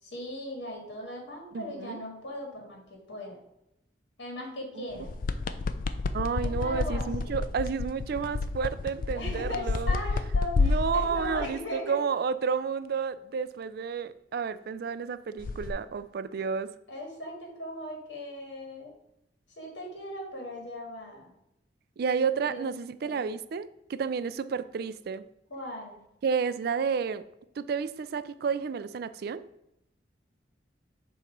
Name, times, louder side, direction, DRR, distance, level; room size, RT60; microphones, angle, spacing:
voice 1, 0.0-3.4 4.2-5.1 6.4-7.5 9.1-12.0 16.9-18.9 19.6-21.3 22.4-22.7 23.0-23.3 25.5-26.0, left 1 dB, 85° left, 0 dB, 1.9 m, -38 dB
voice 2, 1.5-2.0 4.8-4.9 6.1-9.9 10.6-16.7 22.0-25.2 26.2-27.2 27.6-29.4, right 6 dB, 60° right, 13 dB, 0.4 m, -31 dB
sound 1, 5.0-11.5 15.4-15.7, left 3 dB, 50° left, 0.4 m, -30 dB
7.1 x 3.0 x 5.1 m, 0.83 s
head